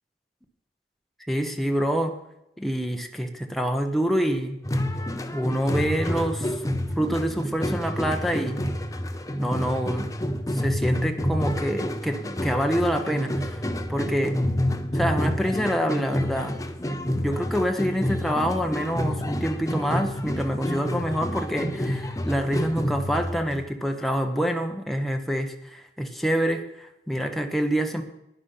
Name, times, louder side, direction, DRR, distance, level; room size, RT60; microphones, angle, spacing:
voice 1, 1.3-2.2 2.6-4.6 5.3-6.5 7.0-8.6 9.4-10.1 10.5-13.6 13.9-14.4 14.9-16.6 17.2-28.0, equal, ahead, 4 dB, 1.1 m, -26 dB
sound 1, 4.6-23.7, left 1 dB, 20° left, 0.8 m, -29 dB
10.5 x 10.0 x 5.7 m, 0.85 s
head